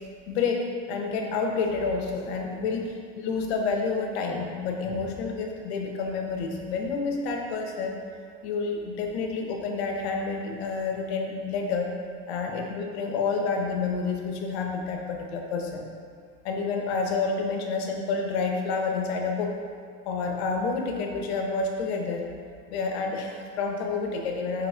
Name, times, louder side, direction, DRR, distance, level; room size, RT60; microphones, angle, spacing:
voice 1, 0.3-7.9 8.4-11.9 12.3-15.9 16.4-19.5 20.0-22.3 22.7-24.7, left 4 dB, 90° left, 2 dB, 0.9 m, -29 dB
4.9 x 3.9 x 4.9 m, 2.1 s
supercardioid pair, 110°, 30 cm